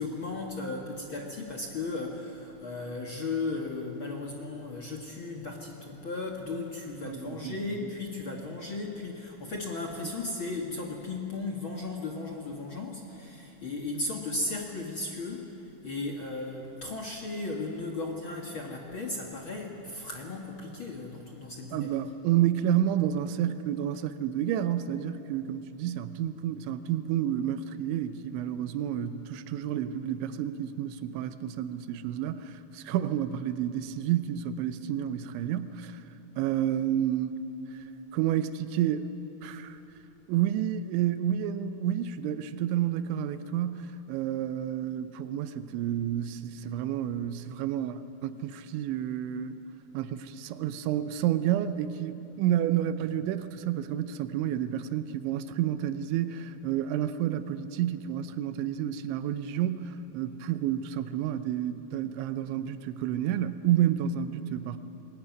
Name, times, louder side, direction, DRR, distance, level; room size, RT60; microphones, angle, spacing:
voice 1, 0.0-22.0 39.4-39.6, left 3 dB, 65° left, 0 dB, 1.2 m, -36 dB
voice 2, 7.0-7.5 21.7-36.0 36.4-37.4 37.7-37.8 38.1-39.1 39.4-39.8 40.3-49.6 49.9-64.8, right 11 dB, 90° right, 11 dB, 3.1 m, -30 dB
22.5 x 19.5 x 9.4 m, 2.9 s
omnidirectional pair, 5.2 m